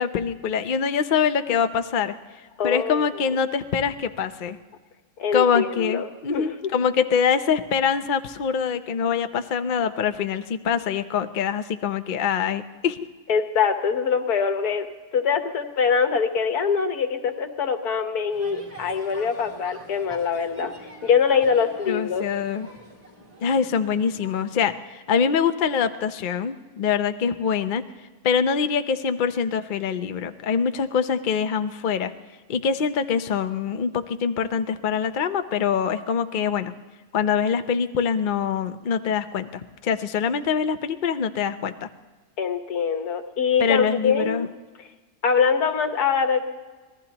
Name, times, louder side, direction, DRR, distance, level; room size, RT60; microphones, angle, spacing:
voice 1, 0.0-2.1 2.6-4.6 5.3-13.0 21.9-22.7 23.4-27.8 28.2-32.1 32.5-36.7 37.1-41.9 43.6-44.5, left 6 dB, 50° left, 8 dB, 0.6 m, -24 dB
voice 2, 2.6-3.3 5.2-6.5 13.3-14.9 15.1-22.3 42.4-44.5 45.2-46.4, left 6 dB, 80° left, 7 dB, 1.7 m, -23 dB
sound 1, 18.3-24.6, equal, 25° right, 2.7 m, -45 dB
26.0 x 19.0 x 2.9 m, 1.3 s
omnidirectional pair, 1.6 m